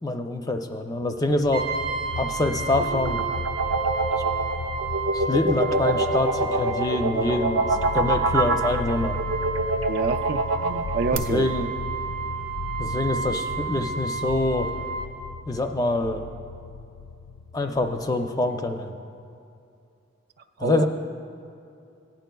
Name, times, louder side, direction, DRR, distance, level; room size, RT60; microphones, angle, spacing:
voice 1, 0.0-1.7 2.2-3.2 5.1-9.2 11.1-11.7 12.8-14.7 15.5-16.2 17.5-18.9 20.6-20.9, left 2 dB, 20° left, 5 dB, 0.4 m, -25 dB
sound 1, 1.1-18.5, left 4 dB, 85° left, 0.3 m, -36 dB
Brass instrument, 1.5-15.1, right 5 dB, 25° right, 0.8 m, -32 dB
sound 2, 2.7-11.2, right 2 dB, 80° right, 0.7 m, -25 dB
voice 2, 9.9-11.5 20.6-20.9, right 5 dB, 45° right, 9 dB, 0.3 m, -28 dB
17.5 x 10.5 x 2.3 m, 2.5 s
head